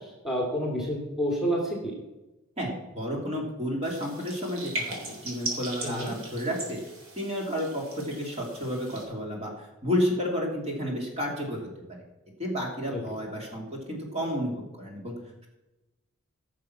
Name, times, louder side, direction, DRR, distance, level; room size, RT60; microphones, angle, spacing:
voice 1, 0.0-1.9 5.8-6.2 12.9-13.0, equal, ahead, -2 dB, 2.4 m, -29 dB
voice 2, 2.6-6.8 7.2-11.7 12.4-15.2, equal, 30° right, -1 dB, 2.9 m, -31 dB
sound 1, 3.8-9.0, right 1 dB, 65° right, 3.9 m, -38 dB
16.0 x 6.7 x 6.0 m, 1.1 s
head